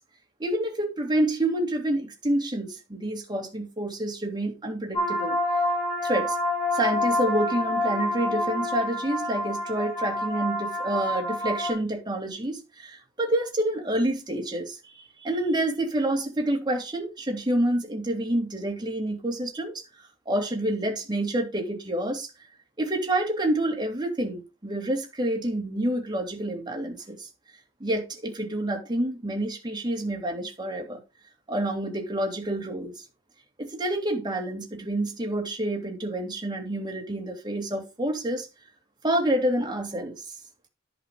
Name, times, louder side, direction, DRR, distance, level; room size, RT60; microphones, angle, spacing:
voice 1, 0.4-5.4 6.0-6.4 6.7-22.3 22.8-27.3 27.8-31.0 31.5-33.0 33.6-38.5 39.0-40.3, right 1 dB, 20° right, 3.1 m, -28 dB
sound 1, 4.9-11.7, left 1 dB, 20° left, 5.2 m, -27 dB
10.5 x 5.3 x 5.1 m
head